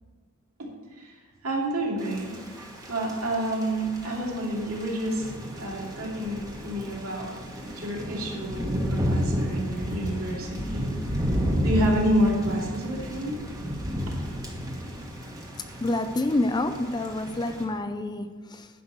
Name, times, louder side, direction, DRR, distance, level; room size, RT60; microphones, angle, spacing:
voice 1, 0.6-1.2 1.4-5.3 5.6-7.3 7.8-11.3 11.6-13.4, right 1 dB, 70° right, -3 dB, 2.8 m, -29 dB
Thunder / Rain, 2.0-17.6, equal, 15° right, 1.3 m, -32 dB
voice 2, 15.8-18.7, left 2 dB, 20° left, 8 dB, 0.4 m, -28 dB
10.5 x 5.6 x 7.3 m, 1.5 s
head